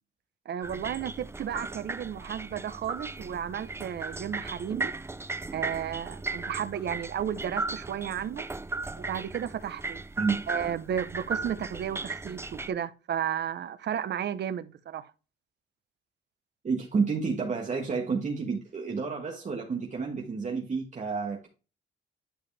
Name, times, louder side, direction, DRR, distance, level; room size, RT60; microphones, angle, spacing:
voice 1, 0.4-4.9 5.5-8.5 9.0-10.0 10.5-15.1, right 9 dB, 60° right, 1.0 m, -33 dB
sound 1, 0.6-12.7, right 3 dB, 10° right, 0.5 m, -37 dB
voice 2, 16.6-21.5, right 5 dB, 40° right, 1.6 m, -30 dB
11.5 x 4.9 x 3.4 m
cardioid pair, 90°, 20 cm